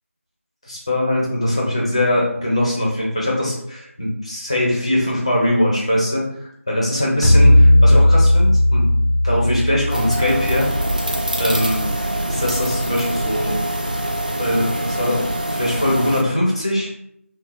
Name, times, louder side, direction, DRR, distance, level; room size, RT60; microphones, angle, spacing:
voice 1, 0.6-8.9 9.2-10.7 11.4-11.8 12.3-13.7 14.4-16.9, left 1 dB, 25° left, -4 dB, 0.6 m, -21 dB
sound 1, 7.2-11.6, left 1 dB, 85° left, 0.4 m, -15 dB
sound 2, 9.9-16.2, right 1 dB, 35° right, 0.3 m, -24 dB
3.1 x 2.0 x 3.9 m, 0.72 s
figure-of-eight pair, 170°, 8 cm